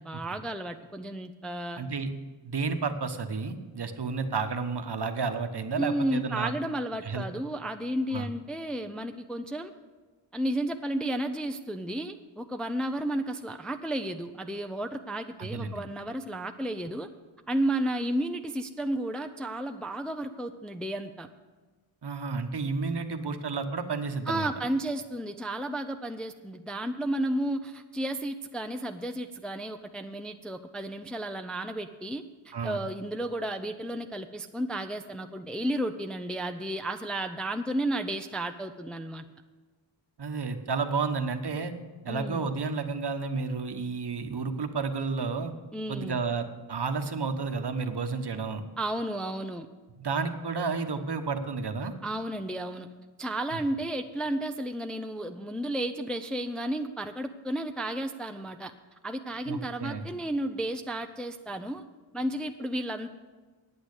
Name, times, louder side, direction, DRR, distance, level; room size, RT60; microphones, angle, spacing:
voice 1, 0.0-1.8 5.8-9.7 10.3-17.1 17.5-21.3 24.3-39.2 42.1-42.5 45.7-46.2 48.8-49.7 52.0-52.9 53.2-58.7 59.0-61.8 62.1-63.1, right 1 dB, ahead, 6 dB, 0.5 m, -32 dB
voice 2, 1.7-2.1 2.4-6.5 7.0-7.2 8.1-8.3 15.4-15.8 22.0-24.5 32.5-32.8 40.2-41.7 42.0-45.5 45.9-48.6 50.0-51.9 59.5-60.0, right 4 dB, 60° right, 7 dB, 1.2 m, -31 dB
9.5 x 8.7 x 8.2 m, 1.3 s
wide cardioid pair, 65°, 46 cm